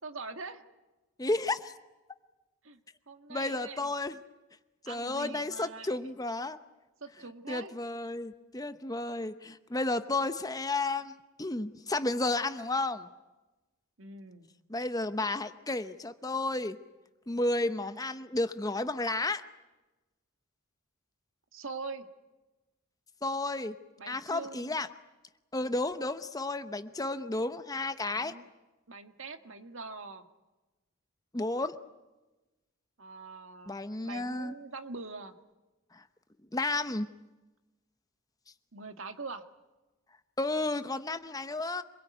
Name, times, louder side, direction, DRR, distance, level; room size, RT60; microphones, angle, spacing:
voice 1, 0.0-0.6 2.6-2.8 3.1-3.9 4.8-6.1 7.0-7.7 14.0-14.5 21.5-22.1 24.0-24.8 28.0-28.5 28.9-30.2 33.0-33.7 34.0-35.3 38.7-39.4, right 4 dB, 65° right, 8 dB, 1.7 m, -43 dB
voice 2, 1.2-1.7 3.3-4.2 4.9-6.6 7.5-11.1 11.4-13.1 14.7-16.8 17.3-19.4 23.2-23.7 24.1-24.9 25.5-28.3 31.3-31.8 33.7-34.5 36.5-37.1 40.4-41.8, left 2 dB, 15° left, 11 dB, 0.9 m, -32 dB
26.5 x 22.0 x 9.4 m, 1.1 s
head